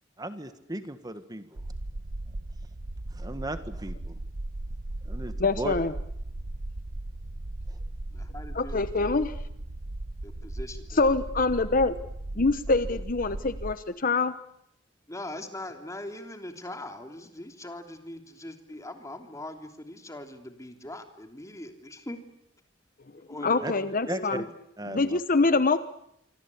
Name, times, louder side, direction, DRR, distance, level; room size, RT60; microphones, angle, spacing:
voice 1, 0.2-1.6 3.1-4.2 5.0-5.7 7.7-7.8 23.6-23.7 24.1-24.4 24.8-25.2, right 1 dB, 20° right, 10 dB, 1.6 m, -36 dB
sound 1, 1.6-13.7, right 1 dB, 80° right, 1.1 m, -37 dB
voice 2, 5.4-5.9 8.5-9.3 10.9-12.0 12.4-14.3 23.4-24.4 24.9-25.8, left 3 dB, 45° left, 12 dB, 1.0 m, -25 dB
voice 3, 8.1-9.3 10.2-11.0 12.7-13.0 15.1-22.2 23.3-24.5, left 1 dB, 15° left, 5 dB, 3.1 m, -41 dB
26.5 x 25.0 x 8.5 m, 0.75 s
head